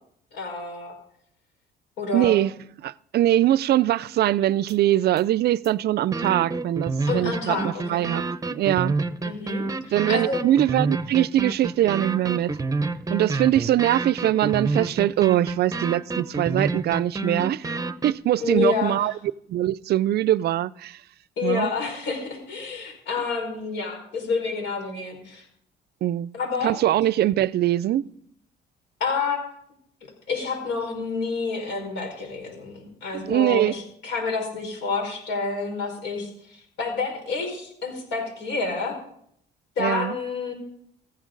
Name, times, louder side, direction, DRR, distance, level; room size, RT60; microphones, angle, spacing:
voice 1, 0.3-0.9 2.0-2.4 7.1-8.0 9.2-10.4 18.4-19.1 21.4-25.5 26.3-26.8 29.0-29.6 30.3-39.0 39.8-40.5, left 4 dB, 75° left, 5.2 m, -29 dB
voice 2, 2.1-2.5 2.8-8.2 8.5-9.0 9.9-12.5 13.1-17.7 18.0-19.1 19.5-21.0 21.4-21.7 26.0-26.3 26.6-28.0 33.1-33.7 39.8-40.1, right 13 dB, 60° right, 0.4 m, -22 dB
sound 1, 4.7-4.8 5.2-5.3 5.6-5.7 6.1-18.1, right 3 dB, 20° right, 0.7 m, -28 dB
16.0 x 15.0 x 3.9 m
cardioid pair, 105°, 19 cm